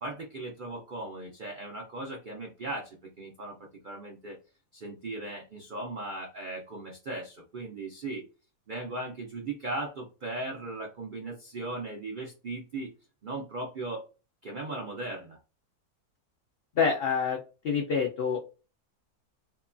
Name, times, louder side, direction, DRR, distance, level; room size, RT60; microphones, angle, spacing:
voice 1, 0.0-4.4 4.7-8.2 8.7-12.9 13.2-14.0 14.4-15.4, right 2 dB, 75° right, 0 dB, 0.4 m, -38 dB
voice 2, 16.8-17.4 17.6-18.4, left 6 dB, 80° left, 0 dB, 0.5 m, -26 dB
2.8 x 2.2 x 2.4 m, 0.33 s
omnidirectional pair, 1.6 m